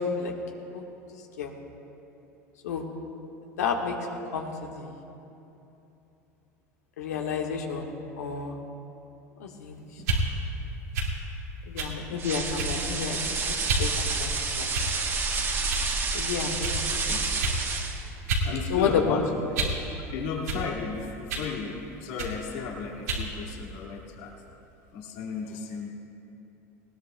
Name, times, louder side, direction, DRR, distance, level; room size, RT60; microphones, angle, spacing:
voice 1, 3.6-3.9 4.3-4.9 7.0-8.6 9.4-9.8 10.1-10.2 11.7-13.2 13.6-14.3 14.6-14.7 16.1-17.0 18.7-19.2, left 6 dB, 85° left, 1 dB, 1.5 m, -30 dB
sound 1, 10.0-10.2 10.9-11.1 11.8-12.0 12.6-12.9 13.7-13.9 14.7-15.1 15.7-15.9 16.6-16.8 17.4-17.6 18.3-18.5 18.8-19.8 20.5-20.6 21.3-21.5 22.2-22.4 23.1-23.3, right 2 dB, 80° right, 2.2 m, -29 dB
sound 2, 12.2-18.1, right 4 dB, 30° right, 1.5 m, -29 dB
voice 2, 18.4-19.3 20.1-24.3 24.9-25.9, left 5 dB, 65° left, -1 dB, 2.1 m, -34 dB
19.5 x 18.5 x 2.3 m, 2.9 s
hypercardioid pair, 95°, 8 cm